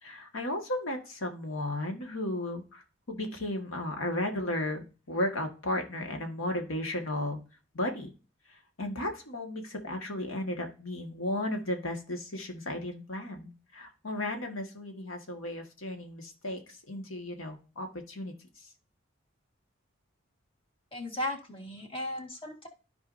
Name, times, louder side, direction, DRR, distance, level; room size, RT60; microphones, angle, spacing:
voice 1, 0.0-2.8 3.1-7.4 7.7-8.1 8.8-16.6 16.9-18.3, left 1 dB, 90° left, 4 dB, 1.6 m, -34 dB
voice 2, 20.9-22.7, left 1 dB, 25° left, 1 dB, 1.6 m, -36 dB
13.0 x 4.7 x 2.6 m, 0.34 s
head